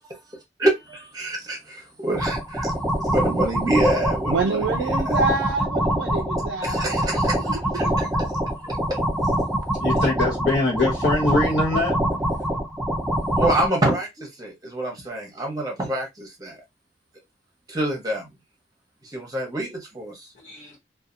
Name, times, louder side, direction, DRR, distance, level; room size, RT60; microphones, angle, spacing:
voice 1, 0.6-2.7 3.1-4.7 6.1-6.2 6.6-8.4 8.6-9.0 13.4-16.6 17.7-18.3 19.1-20.3, right 1 dB, 20° right, 0.8 m, -26 dB
sound 1, 2.1-13.7, right 1 dB, 5° right, 0.4 m, -24 dB
voice 2, 4.3-7.1 7.4-7.9, right 3 dB, 75° right, 0.4 m, -27 dB
voice 3, 9.8-12.0 20.4-20.8, left 2 dB, 65° left, 0.8 m, -23 dB
2.6 x 2.3 x 2.4 m
head